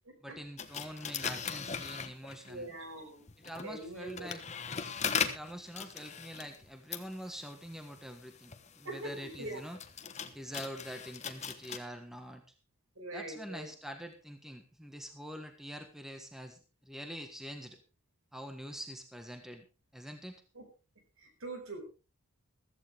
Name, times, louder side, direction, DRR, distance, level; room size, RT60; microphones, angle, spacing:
voice 1, 0.2-2.7 3.4-4.4 5.2-9.8 10.3-12.4 13.1-17.8 18.3-19.6 19.9-20.4, equal, ahead, 6 dB, 1.4 m, -45 dB
sound 1, 0.6-2.6 3.3-11.8, left 6 dB, 30° left, 1.2 m, -39 dB
voice 2, 2.4-3.2 3.6-4.3 8.8-9.6 13.0-13.7 20.5-20.7 21.2-21.9, right 2 dB, 70° right, 6 dB, 4.9 m, -43 dB
15.5 x 14.0 x 3.5 m, 0.31 s
head